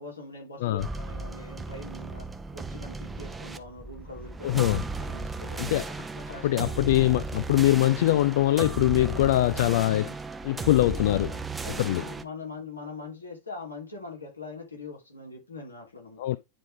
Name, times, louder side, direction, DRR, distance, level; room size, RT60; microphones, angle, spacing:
voice 1, 0.0-2.3 2.5-4.7 5.0-5.7 6.1-6.7 11.6-16.2, left 3 dB, 80° left, 2.9 m, -42 dB
sound 1, 0.8-12.2, right 3 dB, 10° right, 0.7 m, -36 dB
voice 2, 4.4-4.8 5.6-5.8 6.4-10.1 10.4-11.4 11.8-12.0 16.2-16.4, left 15 dB, 55° left, 0.3 m, -23 dB
9.9 x 3.4 x 3.7 m
figure-of-eight pair, 90°, 0 cm